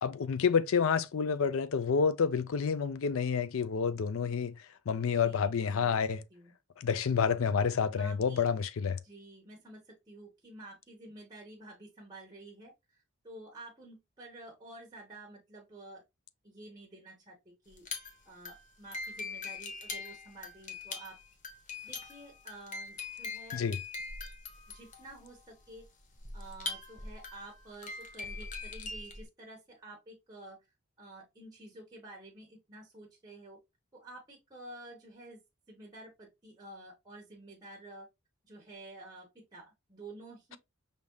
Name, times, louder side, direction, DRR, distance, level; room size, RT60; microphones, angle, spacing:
voice 1, 0.0-4.6 4.9-6.2 6.8-9.0 23.5-23.8, left 6 dB, 65° left, 0.4 m, -29 dB
voice 2, 5.1-6.0 6.3-6.5 7.9-8.5 9.0-16.0 16.4-17.9 18.2-21.2 21.8-23.6 24.7-25.8 26.3-30.7 31.0-33.6 33.9-35.4 35.7-38.1 38.4-40.6, right 2 dB, 20° right, 1.2 m, -50 dB
sound 1, 17.7-29.2, left 3 dB, 35° left, 0.7 m, -42 dB
5.2 x 3.5 x 2.2 m
head